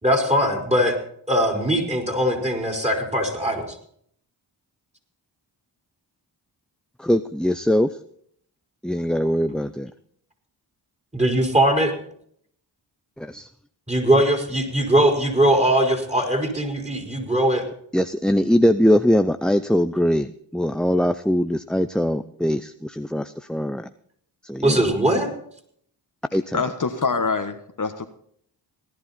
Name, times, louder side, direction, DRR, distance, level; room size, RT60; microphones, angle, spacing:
voice 1, 0.0-1.0 1.3-3.8 11.1-11.9 13.9-17.6 24.6-25.3, right 1 dB, 15° right, 2 dB, 4.9 m, -20 dB
voice 2, 7.0-7.9 8.8-9.9 13.2-13.5 17.9-23.9 24.4-24.8 26.3-26.6, equal, ahead, 10 dB, 0.6 m, -21 dB
voice 3, 26.5-28.1, left 4 dB, 40° left, 7 dB, 1.4 m, -25 dB
18.5 x 11.0 x 4.3 m, 0.64 s
cardioid pair, 45°, 46 cm